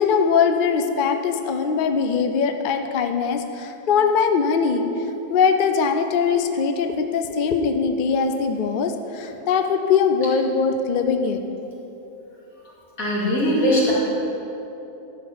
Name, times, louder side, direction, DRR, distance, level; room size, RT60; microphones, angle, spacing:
voice 1, 0.0-4.8 5.3-11.4, left 6 dB, 55° left, 6 dB, 0.6 m, -21 dB
voice 2, 13.0-13.9, equal, 75° left, -7 dB, 2.9 m, -20 dB
12.0 x 4.6 x 7.3 m, 2.9 s
omnidirectional pair, 1.5 m